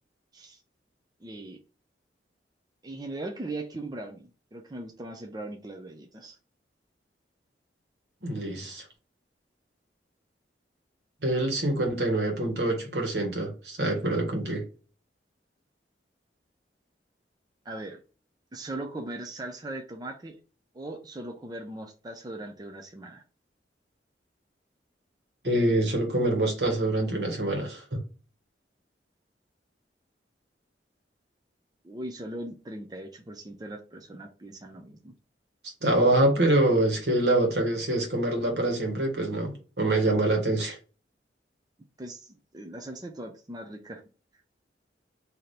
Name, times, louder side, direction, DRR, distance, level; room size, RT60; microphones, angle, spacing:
voice 1, 1.2-1.6 2.8-6.4 17.6-18.0 18.5-20.4 20.7-23.2 31.8-35.1 42.0-44.0, right 2 dB, 25° right, 0.5 m, -39 dB
voice 2, 8.2-8.8 11.2-14.6 25.4-28.0 35.8-40.8, right 1 dB, 65° right, 1.4 m, -25 dB
4.1 x 2.8 x 3.2 m
head